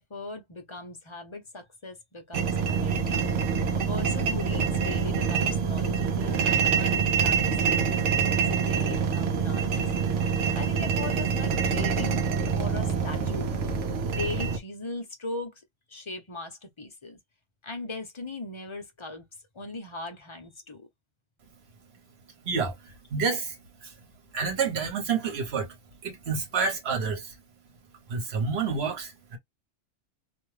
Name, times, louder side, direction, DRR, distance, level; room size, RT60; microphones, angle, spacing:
voice 1, 0.0-3.3 3.7-10.3 10.5-12.2 12.5-13.6 14.0-17.2 17.6-19.2 19.5-20.9, left 2 dB, 30° left, 0.6 m, -39 dB
sound 1, 2.3-14.6, right 6 dB, 80° right, 0.9 m, -26 dB
voice 2, 22.4-24.0 24.3-25.8 26.0-27.4 28.1-29.4, right 5 dB, 60° right, 1.2 m, -29 dB
2.6 x 2.2 x 3.2 m
omnidirectional pair, 1.2 m